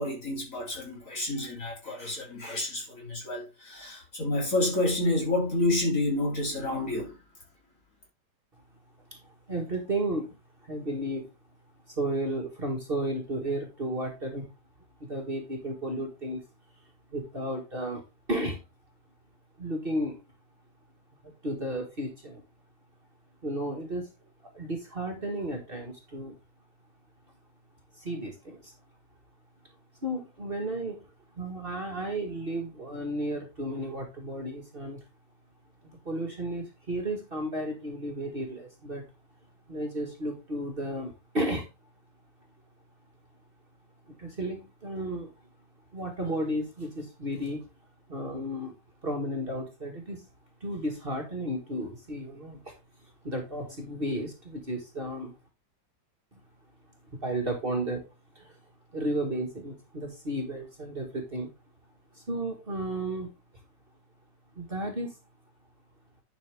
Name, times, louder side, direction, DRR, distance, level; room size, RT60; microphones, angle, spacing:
voice 1, 0.0-7.2, left 2 dB, 50° left, 3.8 m, -29 dB
voice 2, 9.5-10.4 10.6-11.3 12.0-14.5 15.0-16.4 17.1-18.0 18.3-18.6 19.6-20.2 21.2-22.4 23.4-24.1 24.5-26.4 28.0-28.7 30.0-31.0 31.4-35.0 35.8-39.0 39.7-41.7 44.1-45.3 45.9-47.6 48.1-48.7 49.0-50.3 50.6-52.7 53.2-55.3 56.3-56.4 57.2-58.1 58.4-58.5 58.9-61.5 62.2-63.3 64.6-65.1, right 1 dB, 35° right, 1.8 m, -33 dB
10.5 x 5.8 x 3.5 m
omnidirectional pair, 1.8 m